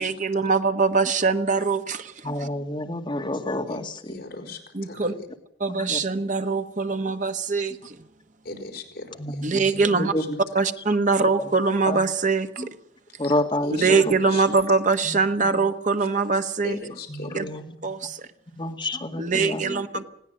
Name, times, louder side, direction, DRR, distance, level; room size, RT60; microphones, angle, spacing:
voice 1, 0.0-2.2 4.7-5.1 5.6-8.0 9.4-10.1 10.5-12.7 13.8-16.8 17.3-17.4 17.8-18.2 19.2-20.0, right 4 dB, 45° right, 7 dB, 1.3 m, -23 dB
voice 2, 2.2-4.1 5.7-6.0 9.2-10.4 11.4-11.5 11.9-12.0 12.6-12.7 13.2-14.1 15.0-15.2 17.1-17.7 18.6-19.6, left 1 dB, 25° left, 4 dB, 2.0 m, -29 dB
voice 3, 3.7-5.1 8.4-10.3 13.2-13.3 13.6-13.9 14.3-14.4 16.6-17.4 19.6-19.8, left 3 dB, 60° left, 2 dB, 4.9 m, -38 dB
20.5 x 16.5 x 8.0 m, 0.69 s
head